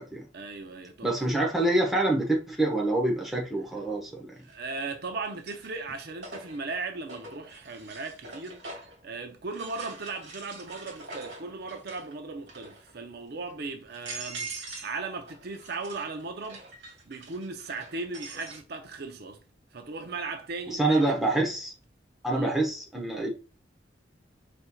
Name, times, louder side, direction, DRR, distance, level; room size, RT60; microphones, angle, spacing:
voice 1, 0.3-1.1 4.4-8.6 9.0-16.6 17.0-19.4 19.7-21.1 22.3-22.6, right 3 dB, 55° right, 0.6 m, -37 dB
voice 2, 1.0-4.3 20.7-21.7 22.2-23.3, right 2 dB, ahead, 1.0 m, -26 dB
sound 1, 2.6-2.7 4.4-4.8 5.2-9.0 9.5-12.1 12.4-12.9 13.5-13.6 13.9-15.0 15.3-18.6, right 3 dB, 75° right, 2.2 m, -44 dB
4.4 x 4.2 x 2.3 m
head